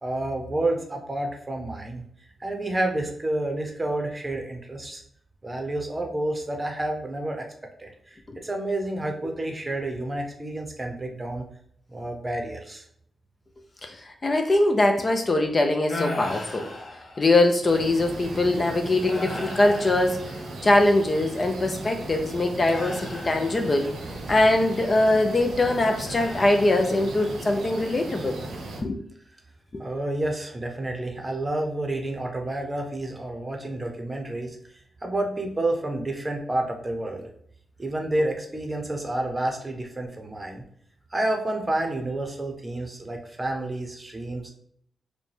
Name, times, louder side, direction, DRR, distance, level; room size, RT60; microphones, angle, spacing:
voice 1, 0.0-2.0 2.4-5.0 5.4-7.4 7.8-11.4 11.9-12.8 29.8-34.6 35.0-37.3 37.8-40.6 41.1-44.5, right 1 dB, 20° right, 3 dB, 0.7 m, -29 dB
voice 2, 13.8-16.7 17.2-20.2 20.6-23.9 24.3-28.4 28.8-29.0, left 2 dB, 30° left, 4 dB, 0.4 m, -22 dB
sound 1, 15.9-17.6 18.2-18.4 19.0-20.9 22.7-24.0 26.1-27.2 27.6-28.1, left 2 dB, 60° left, 0.8 m, -38 dB
sound 2, 17.6-28.8, right 2 dB, 90° right, 0.9 m, -37 dB
5.0 x 2.2 x 3.3 m, 0.67 s
wide cardioid pair, 115°, 0 cm